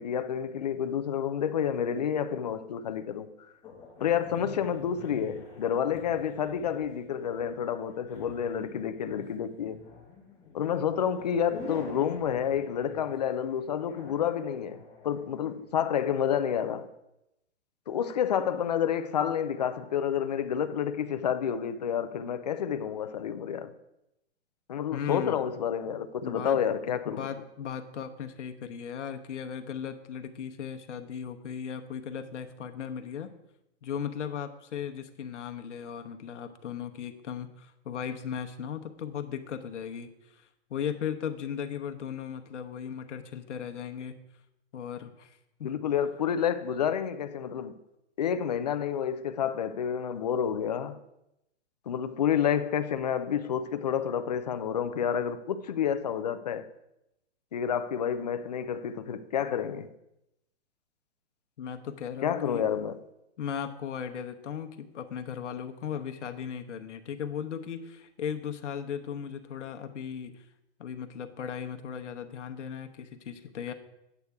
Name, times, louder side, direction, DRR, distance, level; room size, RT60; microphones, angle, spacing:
voice 1, 0.0-3.3 4.0-9.8 10.5-16.9 17.9-23.7 24.7-27.3 45.6-47.8 48.2-51.0 51.9-56.7 57.5-59.9 62.2-63.0, left 8 dB, 40° left, 0.4 m, -29 dB
sound 1, 3.6-16.3, left 4 dB, 10° left, 1.5 m, -48 dB
voice 2, 24.9-25.4 26.2-26.6 26.9-33.3 33.8-44.2 44.7-45.7 61.6-62.6 63.4-70.4 70.8-73.7, left 8 dB, 90° left, 1.0 m, -37 dB
8.2 x 8.1 x 3.5 m
hypercardioid pair, 165°, 35 cm